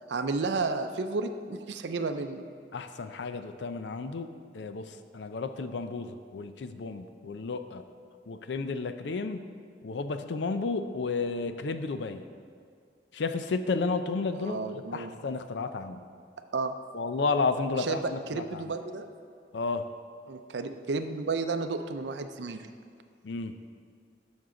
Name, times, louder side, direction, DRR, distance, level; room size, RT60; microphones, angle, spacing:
voice 1, 0.1-2.4 14.4-15.1 16.5-16.7 17.7-19.1 20.3-22.7, right 4 dB, 80° right, 8 dB, 0.5 m, -32 dB
voice 2, 2.7-7.8 8.3-9.4 9.8-12.2 13.1-16.0 16.9-18.7 19.5-19.8 23.2-23.5, left 4 dB, 85° left, 9 dB, 0.5 m, -32 dB
10.5 x 6.3 x 3.8 m, 2.2 s
head